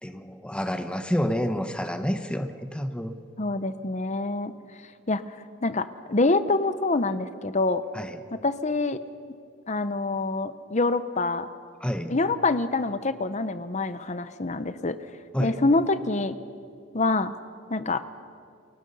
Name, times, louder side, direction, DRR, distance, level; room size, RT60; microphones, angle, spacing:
voice 1, 0.0-3.2 7.9-8.2 11.8-12.1 15.3-15.6, equal, 5° left, 7 dB, 1.0 m, -29 dB
voice 2, 3.4-4.5 5.1-5.2 5.6-7.8 8.3-9.0 9.7-11.5 12.1-15.0 15.4-16.4 16.9-17.3 17.7-18.0, left 3 dB, 35° left, 12 dB, 0.9 m, -26 dB
29.5 x 22.5 x 5.6 m, 2.4 s
head